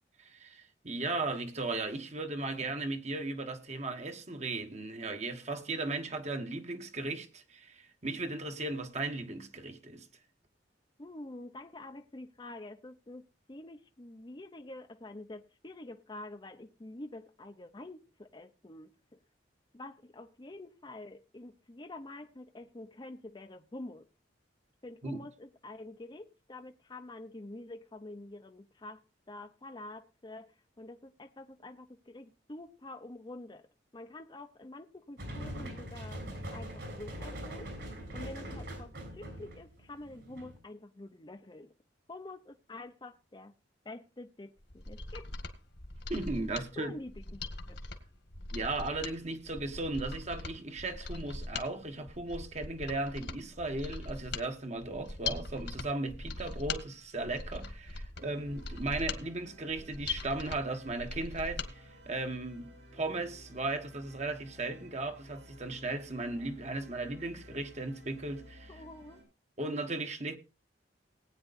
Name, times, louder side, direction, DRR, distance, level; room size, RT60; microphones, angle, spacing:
voice 1, 0.2-10.1 25.0-25.2 46.1-47.0 48.5-68.8 69.6-70.4, right 2 dB, 40° right, 1.4 m, -36 dB
voice 2, 11.0-19.2 19.7-24.1 24.8-29.0 29.3-33.7 33.9-36.2 36.5-37.7 38.1-41.7 42.1-43.5 43.8-45.3 46.5-47.4 47.7-47.8 68.7-69.2, left 2 dB, 25° left, 0.7 m, -47 dB
sound 1, 35.2-40.6, equal, 70° right, 6.7 m, -42 dB
Mechanisms, 44.6-61.7 62.1-62.2, left 3 dB, 70° left, 1.9 m, -41 dB
sound 2, 58.1-69.2, equal, 90° right, 7.3 m, -54 dB
19.5 x 9.4 x 2.6 m
head